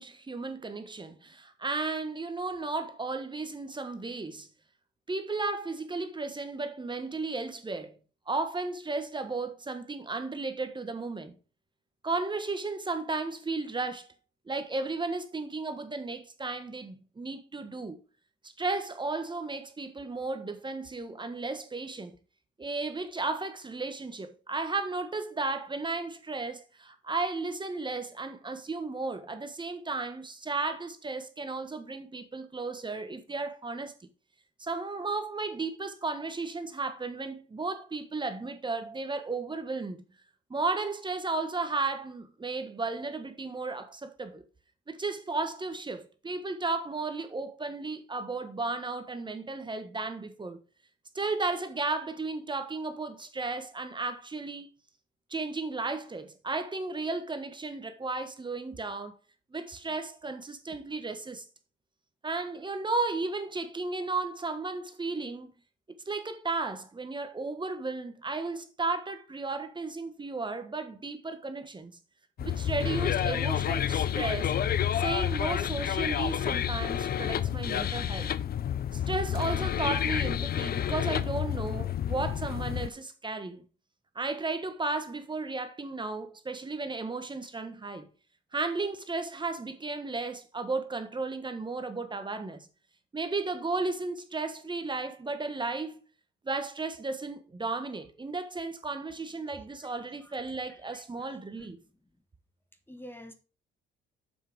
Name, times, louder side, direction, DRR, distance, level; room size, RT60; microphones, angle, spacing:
voice 1, 0.0-4.5 5.1-7.9 8.3-11.3 12.0-14.1 14.5-18.0 18.4-22.1 22.6-33.9 34.6-40.0 40.5-44.4 44.9-50.6 51.1-54.7 55.3-59.2 59.5-61.5 62.2-65.5 65.9-71.9 72.4-74.5 74.9-78.3 78.9-83.6 84.1-88.1 88.5-92.6 93.1-96.0 96.4-101.8, right 3 dB, 25° right, 1.3 m, -34 dB
sound 1, 72.4-82.9, left 10 dB, 50° left, 0.5 m, -29 dB
voice 2, 100.2-101.3 101.6-101.7 102.9-103.3, equal, 10° left, 1.2 m, -49 dB
7.4 x 5.7 x 4.7 m
cardioid pair, 90°, 20 cm